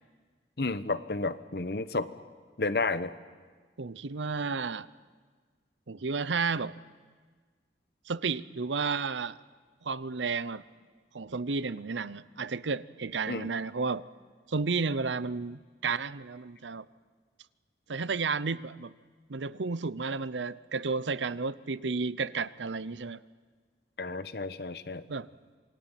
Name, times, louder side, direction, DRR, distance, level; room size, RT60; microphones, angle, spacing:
voice 1, 0.6-2.1 2.6-3.1 13.3-13.5 24.0-25.0, left 3 dB, 60° left, 13 dB, 1.0 m, -31 dB
voice 2, 3.8-4.9 5.9-6.7 8.1-9.4 9.8-10.6 11.1-14.0 14.5-16.8 17.9-18.9 19.3-23.2 25.1-25.3, right 4 dB, 90° right, 17 dB, 0.7 m, -32 dB
27.5 x 22.5 x 9.1 m, 1.5 s
head